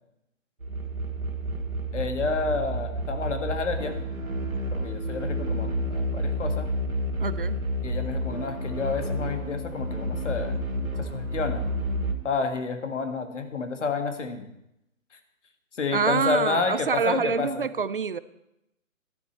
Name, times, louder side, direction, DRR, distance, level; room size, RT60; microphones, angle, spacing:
sound 1, 0.6-12.1, equal, 85° right, 2.1 m, -30 dB
voice 1, 1.9-3.9 4.7-6.7 7.8-10.6 11.0-11.6 12.2-14.5 15.7-17.7, left 4 dB, 60° left, 6 dB, 1.8 m, -30 dB
voice 2, 7.2-7.5 15.9-18.2, right 5 dB, 40° right, 16 dB, 0.5 m, -26 dB
13.0 x 11.5 x 4.4 m, 0.85 s
figure-of-eight pair, 140°, 41 cm